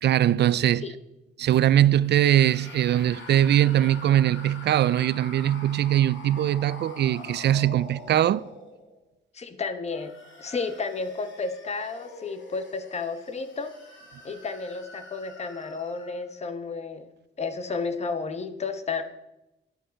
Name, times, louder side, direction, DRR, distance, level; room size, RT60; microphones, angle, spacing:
voice 1, 0.0-0.9 1.4-8.4, right 12 dB, 65° right, 0.4 m, -21 dB
sound 1, 2.0-9.1 9.8-16.3, left 2 dB, 85° left, 2.9 m, -45 dB
voice 2, 9.3-13.7 14.2-17.1 17.4-19.0, left 4 dB, 35° left, 1.1 m, -32 dB
11.0 x 11.0 x 5.2 m
wide cardioid pair, 155°, 19 cm